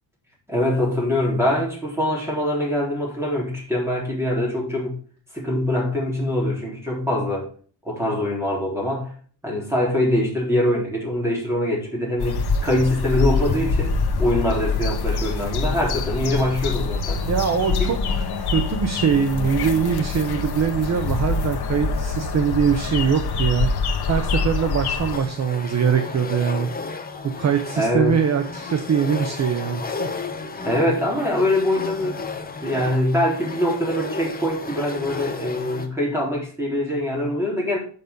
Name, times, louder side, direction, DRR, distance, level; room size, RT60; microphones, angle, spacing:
voice 1, 0.5-4.9 5.3-7.5 7.8-9.1 9.4-13.9 14.2-17.2 17.8-17.9 27.8-28.2 30.6-32.2 32.6-37.8, left 1 dB, 5° right, -4 dB, 3.7 m, -23 dB
sound 1, 12.2-25.2, left 4 dB, 60° left, 1.2 m, -25 dB
voice 2, 17.2-23.7 24.1-26.7 27.4-30.1, right 7 dB, 40° right, 7 dB, 0.7 m, -22 dB
sound 2, 25.1-35.9, left 4 dB, 20° left, 0.8 m, -33 dB
6.8 x 6.6 x 5.2 m, 0.43 s
wide cardioid pair, 170°, 44 cm